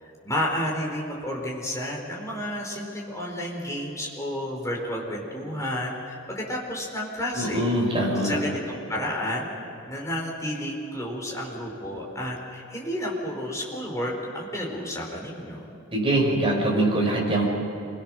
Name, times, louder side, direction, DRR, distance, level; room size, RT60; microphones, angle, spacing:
voice 1, 0.0-7.7 8.2-9.5 9.8-15.7, left 1 dB, 15° left, -2 dB, 4.1 m, -31 dB
voice 2, 7.4-8.4 15.9-17.4, right 1 dB, 25° right, -2 dB, 5.4 m, -23 dB
27.0 x 21.5 x 6.2 m, 2.8 s
head